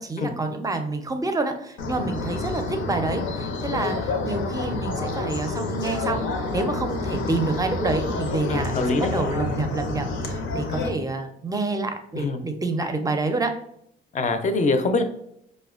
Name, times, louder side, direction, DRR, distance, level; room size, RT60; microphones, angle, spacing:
voice 1, 0.0-13.5, right 3 dB, 20° right, 6 dB, 0.5 m, -28 dB
sound 1, 1.8-10.9, left 3 dB, 85° left, 0.6 m, -28 dB
voice 2, 8.5-9.1 12.1-12.4 14.1-15.0, left 3 dB, 40° left, 7 dB, 0.5 m, -23 dB
4.8 x 2.1 x 2.4 m, 0.73 s
cardioid pair, 90°, 20 cm